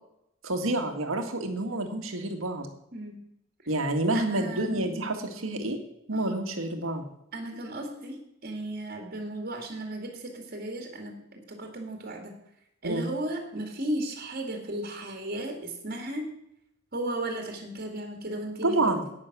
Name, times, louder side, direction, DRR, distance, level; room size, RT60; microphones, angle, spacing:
voice 1, 0.4-2.7 3.7-5.8 6.1-7.0 12.8-13.0 18.6-19.0, right 2 dB, 85° right, 6 dB, 1.9 m, -28 dB
voice 2, 4.1-4.7 6.1-6.3 7.3-12.4 12.8-16.3 16.9-19.0, right 1 dB, 50° right, 3 dB, 2.3 m, -35 dB
11.0 x 9.4 x 6.1 m, 0.80 s
head